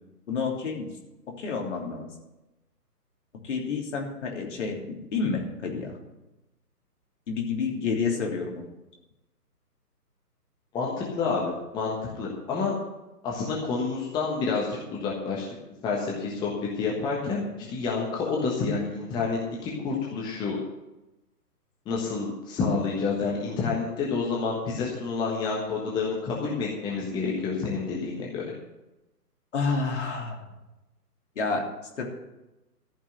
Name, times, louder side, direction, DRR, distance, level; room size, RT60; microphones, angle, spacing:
voice 1, 0.3-0.9 1.4-2.1 3.4-5.9 7.3-8.7 29.5-30.5 31.3-31.6 32.0-32.1, left 4 dB, 45° left, 1 dB, 3.2 m, -29 dB
voice 2, 10.7-12.7 13.2-15.4 15.8-16.5 16.8-17.4 17.7-20.6 21.8-28.5, left 4 dB, 10° left, -3 dB, 1.3 m, -29 dB
14.5 x 5.9 x 9.1 m, 0.99 s
figure-of-eight pair, 135°, 48 cm